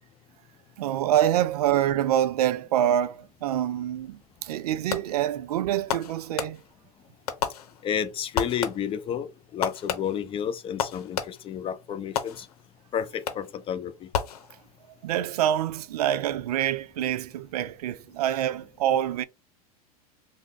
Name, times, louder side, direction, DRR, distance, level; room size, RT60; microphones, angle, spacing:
voice 1, 0.8-6.6 15.0-19.2, right 11 dB, 80° right, 0.4 m, -26 dB
Fireworks, 4.9-5.3 5.9-6.9 7.3-8.0 8.3-9.1 9.6-11.6 12.2-12.8 13.3-13.7 14.1-14.9, left 8 dB, 75° left, 0.7 m, -32 dB
voice 2, 7.8-12.5 12.9-14.1, left 8 dB, 25° left, 0.5 m, -31 dB
3.3 x 2.0 x 3.9 m
hypercardioid pair, 105°, 20 cm